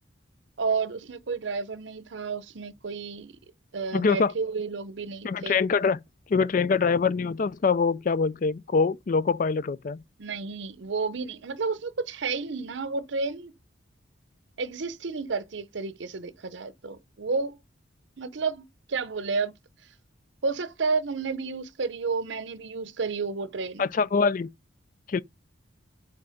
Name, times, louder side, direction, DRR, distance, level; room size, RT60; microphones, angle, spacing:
voice 1, 0.6-3.4 3.7-5.6 10.2-13.5 14.6-17.6 18.2-19.5 20.4-23.9, right 4 dB, 70° right, 0.7 m, -31 dB
voice 2, 3.9-4.3 5.2-6.0 6.3-10.0 23.8-24.5 25.1-25.2, left 5 dB, 45° left, 0.4 m, -24 dB
5.6 x 3.9 x 5.2 m
head